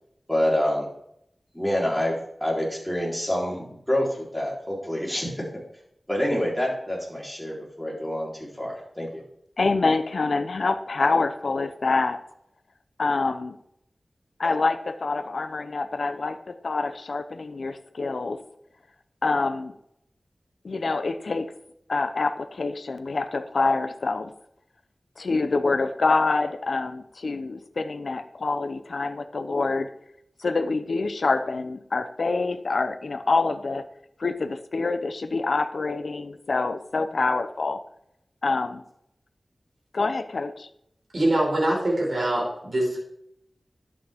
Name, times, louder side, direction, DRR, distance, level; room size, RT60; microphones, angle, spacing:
voice 1, 0.3-0.9 1.5-5.4 6.1-9.2, left 1 dB, 5° left, -4 dB, 3.9 m, -27 dB
voice 2, 9.6-12.2 13.0-13.6 14.4-18.4 19.2-19.7 20.6-21.5 21.9-24.3 25.2-29.9 30.4-33.9 34.2-37.8 38.4-38.8 39.9-40.7, left 3 dB, 75° left, 10 dB, 0.8 m, -26 dB
voice 3, 41.1-43.0, right 1 dB, 55° right, -3 dB, 4.8 m, -23 dB
11.5 x 8.4 x 3.6 m, 0.75 s
wide cardioid pair, 90°, 0 cm